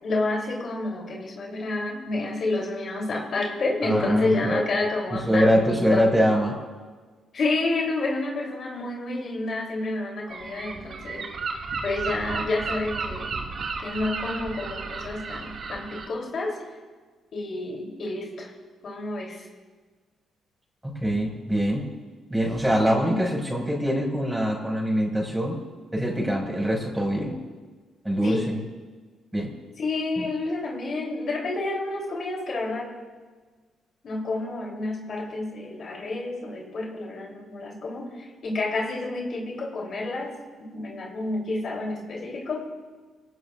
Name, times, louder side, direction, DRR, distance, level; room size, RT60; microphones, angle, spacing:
voice 1, 0.0-6.3 7.3-11.3 11.8-13.3 13.8-16.6 17.3-18.5 18.8-19.4 22.8-23.3 28.2-28.5 29.8-32.9 34.0-40.3 40.6-42.7, left 2 dB, 55° left, -1 dB, 3.2 m, -29 dB
voice 2, 3.8-4.6 5.1-6.5 20.8-21.8 22.3-25.6 25.9-27.4 28.0-28.6 29.3-29.5 30.2-30.3, equal, 10° right, -1 dB, 5.4 m, -23 dB
Gull seagull, 10.3-16.1, right 4 dB, 55° right, 2.0 m, -33 dB
23.5 x 17.5 x 2.5 m, 1.4 s
cardioid pair, 90°, 0 cm